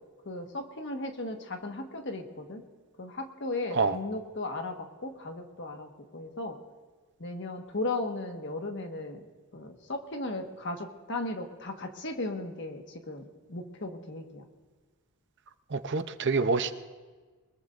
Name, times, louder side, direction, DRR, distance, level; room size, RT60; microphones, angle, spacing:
voice 1, 0.2-2.6 3.0-6.6 7.2-9.2 9.5-14.4, left 2 dB, 55° left, 4 dB, 1.5 m, -36 dB
voice 2, 15.7-16.8, right 4 dB, 50° right, 10 dB, 0.7 m, -27 dB
23.0 x 20.5 x 2.6 m, 1.4 s
head